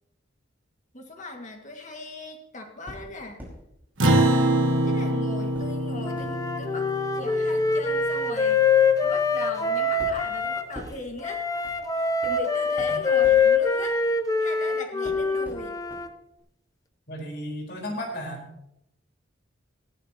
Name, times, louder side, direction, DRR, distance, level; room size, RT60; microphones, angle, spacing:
voice 1, 0.9-3.4 4.8-8.7 9.0-11.4 12.0-14.0 14.4-15.8, left 2 dB, 40° left, 3 dB, 2.0 m, -39 dB
sound 1, 2.9-3.6 4.0-5.0 5.5-14.6 15.0-16.1 16.4-16.5, equal, 10° right, 5.2 m, -46 dB
Acoustic guitar, 4.0-8.7, right 1 dB, 85° right, 1.5 m, -25 dB
Wind instrument woodwind instrument, 6.0-10.7 11.2-16.1, left 5 dB, 20° left, 0.8 m, -24 dB
voice 2, 17.1-18.5, equal, 55° left, 0 dB, 4.5 m, -34 dB
19.0 x 14.0 x 3.0 m, 0.83 s
head